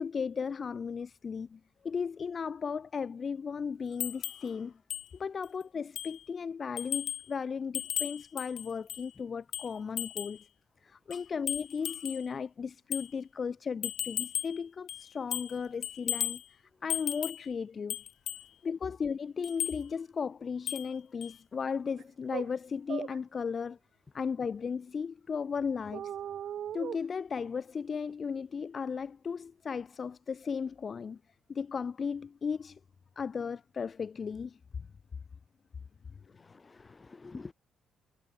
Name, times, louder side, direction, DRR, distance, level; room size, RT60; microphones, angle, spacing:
voice 1, 0.0-4.8 5.1-10.5 10.8-18.0 18.6-23.8 24.1-26.1 26.7-31.2 31.5-32.8 33.2-34.6, left 6 dB, 45° left, 1.4 m, -36 dB
sound 1, 4.0-4.5 4.9-5.1 5.4-5.5 6.0-6.2 6.8-7.3 7.7-9.1 9.5-10.4 11.1-12.3 12.9-13.1 13.8-14.6 14.9-15.6 15.8-16.4 16.9-17.5 17.9-18.5 19.4-19.8 20.7-20.9 21.2-21.3, left 11 dB, 75° left, 4.5 m, -36 dB
sound 2, 22.0-22.1 22.3-22.5 22.9-23.2 25.9-27.0, right 10 dB, 65° right, 4.6 m, -38 dB
voice 2, 36.3-37.5, left 3 dB, 25° left, 7.3 m, -48 dB
cardioid pair, 90°, 0 cm